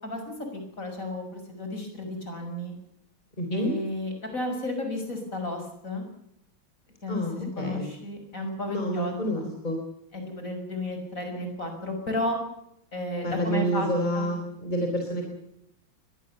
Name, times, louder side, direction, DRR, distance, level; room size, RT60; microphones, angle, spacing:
voice 1, 0.0-2.7 3.5-6.0 7.0-9.5 10.1-12.4 12.9-13.9 14.1-14.3, left 1 dB, 40° left, 5 dB, 6.6 m, -33 dB
voice 2, 3.4-3.7 7.1-7.9 8.7-9.8 13.2-15.3, equal, 20° left, 2 dB, 4.3 m, -28 dB
23.0 x 20.0 x 7.0 m, 0.76 s
omnidirectional pair, 2.2 m